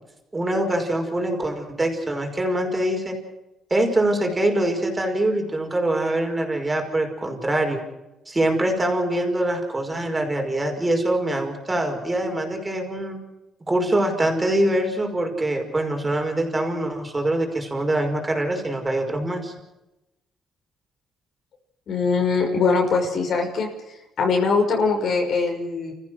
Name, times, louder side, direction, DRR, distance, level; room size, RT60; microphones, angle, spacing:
voice 1, 0.3-3.2 3.7-7.8 8.3-13.2 13.7-19.5, right 1 dB, 20° right, 3 dB, 5.5 m, -24 dB
voice 2, 21.9-23.7 24.2-25.9, left 4 dB, 65° left, 2 dB, 6.0 m, -22 dB
29.5 x 15.0 x 6.4 m, 0.96 s
cardioid pair, 90°, 0 cm